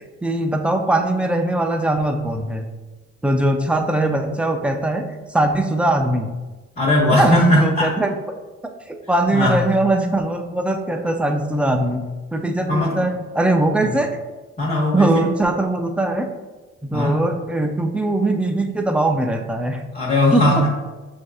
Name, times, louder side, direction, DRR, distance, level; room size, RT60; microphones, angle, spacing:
voice 1, 0.2-2.6 3.2-5.0 5.3-6.3 7.1-8.1 8.9-12.0 12.3-14.1 14.9-16.3 16.8-19.8 20.3-20.5, right 2 dB, 5° right, 4 dB, 0.4 m, -21 dB
voice 2, 6.8-7.9 9.3-9.6 12.7-13.0 13.8-13.9 14.6-15.3 16.9-17.2 19.9-20.7, left 1 dB, 25° left, -6 dB, 1.0 m, -18 dB
6.0 x 2.6 x 2.3 m, 1.2 s
cardioid pair, 90°, 30 cm